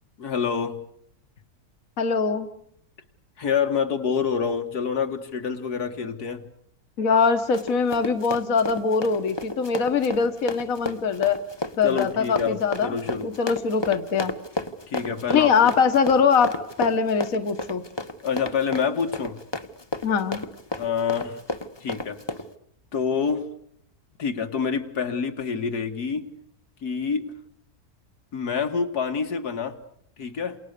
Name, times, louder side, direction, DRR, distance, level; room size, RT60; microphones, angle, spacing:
voice 1, 0.2-0.8 3.4-6.5 11.8-13.3 14.9-15.5 18.2-19.4 20.8-21.4 21.8-22.2 22.9-23.5 24.2-26.3 26.8-27.3 28.3-29.8 30.2-30.6, left 6 dB, 80° left, 6 dB, 2.3 m, -27 dB
voice 2, 2.0-2.5 7.0-11.4 11.8-12.9 13.2-14.3 15.3-17.8 20.0-20.4, left 5 dB, 60° left, 8 dB, 1.7 m, -22 dB
Run, 7.2-22.5, left 2 dB, 20° left, 1.0 m, -33 dB
29.0 x 28.0 x 6.8 m, 0.73 s
omnidirectional pair, 1.6 m